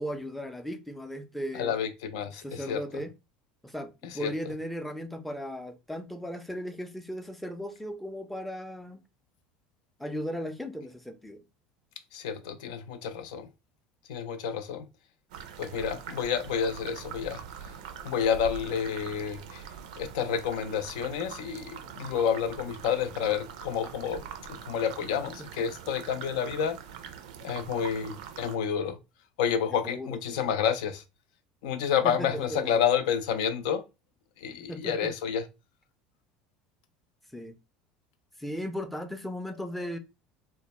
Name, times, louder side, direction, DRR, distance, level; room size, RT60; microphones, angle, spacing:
voice 1, 0.0-1.8 2.3-3.1 3.6-9.0 10.0-11.4 25.4-25.5 29.7-30.4 32.0-32.8 34.7-35.1 37.3-37.6 38.4-40.0, equal, 5° left, 0.4 m, -37 dB
voice 2, 1.5-2.8 4.2-4.3 12.1-13.5 14.1-14.9 15.6-17.4 18.0-19.6 20.0-24.2 24.5-26.8 27.4-29.0 29.4-31.0 31.6-33.8 34.4-35.4, left 8 dB, 75° left, 0.4 m, -29 dB
sound 1, 15.3-28.6, right 8 dB, 75° right, 0.4 m, -43 dB
2.1 x 2.1 x 2.9 m
hypercardioid pair, 80°, 4 cm